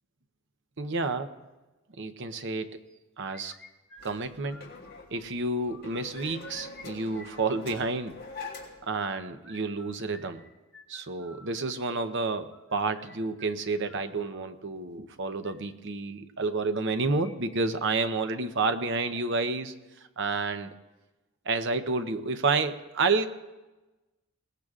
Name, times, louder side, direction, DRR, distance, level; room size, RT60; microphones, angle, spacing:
voice 1, 0.8-1.3 2.0-2.8 3.2-3.5 4.0-4.7 5.1-8.2 8.9-10.4 10.9-19.7 20.2-20.7 21.4-23.3, right 3 dB, 55° right, 9 dB, 0.8 m, -30 dB
sound 1, 3.3-5.2 5.5-6.9 7.1-8.1 8.8-14.5 15.2-15.5 16.8-17.6 17.9-18.0 18.4-18.5 19.1-19.5, left 1 dB, 5° left, 1.5 m, -52 dB
sound 2, 4.0-8.9, left 3 dB, 45° left, 2.8 m, -44 dB
21.5 x 18.5 x 2.5 m, 1.1 s
head